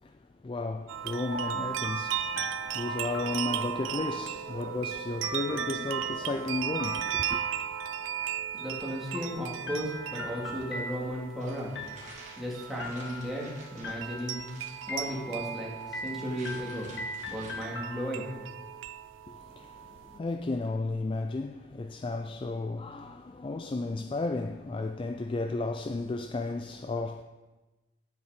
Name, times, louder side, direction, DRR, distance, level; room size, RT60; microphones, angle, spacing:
voice 1, 0.0-7.4 19.3-27.2, left 2 dB, 25° left, 0.3 m, -34 dB
sound 1, 0.9-20.2, right 9 dB, 85° right, 0.5 m, -36 dB
sound 2, 1.3-4.1 5.2-8.2 9.1-11.3 11.8-12.4 12.8-13.5 13.8-14.5 14.9-15.5 15.9-18.4, left 1 dB, 60° left, 1.2 m, -41 dB
voice 2, 8.5-11.7 12.4-14.4 14.9-16.9 17.3-18.3, equal, ahead, 2.2 m, -35 dB
sound 3, 11.4-17.5, right 2 dB, 40° right, 2.4 m, -51 dB
10.0 x 8.0 x 5.0 m
head